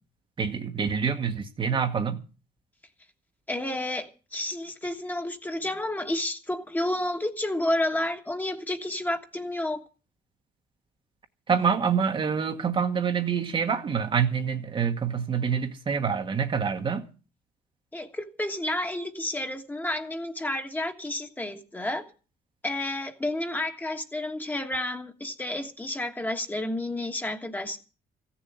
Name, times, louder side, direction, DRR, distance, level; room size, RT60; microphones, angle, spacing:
voice 1, 0.4-2.2 11.5-17.1, right 6 dB, 30° right, 1.2 m, -26 dB
voice 2, 3.5-9.8 17.9-22.0 22.6-27.8, left 1 dB, 10° left, 1.4 m, -30 dB
15.5 x 7.0 x 9.4 m
cardioid pair, 160°, 16 cm